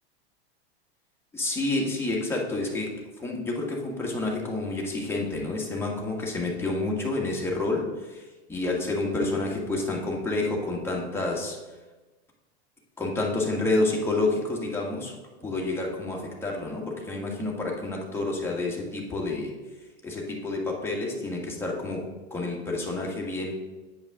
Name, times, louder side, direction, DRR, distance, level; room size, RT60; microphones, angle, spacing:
voice 1, 1.3-11.6 13.0-15.1 15.4-19.5 20.0-22.0 22.3-23.5, left 2 dB, 5° left, -2 dB, 1.6 m, -29 dB
8.7 x 5.3 x 3.6 m, 1.2 s
hypercardioid pair, 115°, 32 cm